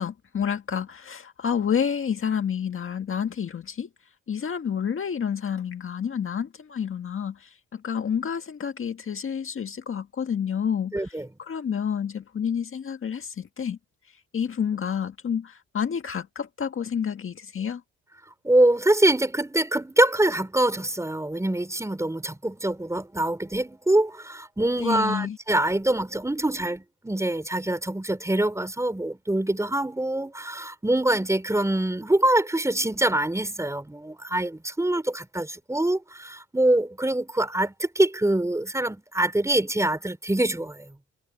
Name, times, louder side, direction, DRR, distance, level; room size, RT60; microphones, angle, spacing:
voice 1, 0.0-3.9 4.3-13.8 14.3-17.8 24.8-25.4, left 7 dB, 45° left, 1.7 m, -29 dB
voice 2, 10.9-11.3 18.4-40.9, right 1 dB, 10° right, 4.1 m, -24 dB
cardioid pair, 90°, 30 cm